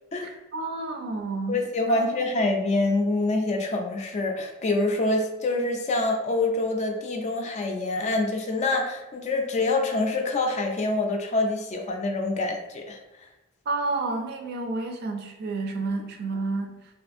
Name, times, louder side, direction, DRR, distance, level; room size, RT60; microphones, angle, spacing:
voice 1, 0.2-1.6 1.9-2.1 13.7-16.8, right 3 dB, 50° right, 4 dB, 0.4 m, -30 dB
voice 2, 1.5-13.0, left 2 dB, 35° left, 3 dB, 0.3 m, -26 dB
2.5 x 2.4 x 2.5 m, 1.0 s
head